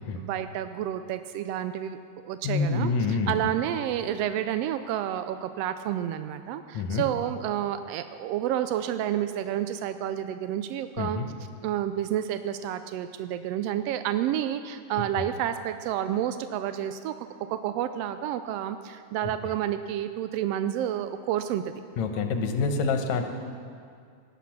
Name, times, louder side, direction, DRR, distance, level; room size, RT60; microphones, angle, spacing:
voice 1, 0.0-11.2 11.6-17.1 17.5-21.6, right 11 dB, 85° right, 10 dB, 1.4 m, -30 dB
voice 2, 2.4-3.3 6.7-7.0 11.0-11.3 22.0-23.3, left 4 dB, 75° left, 6 dB, 2.3 m, -26 dB
18.0 x 10.0 x 5.9 m, 2.2 s
omnidirectional pair, 3.3 m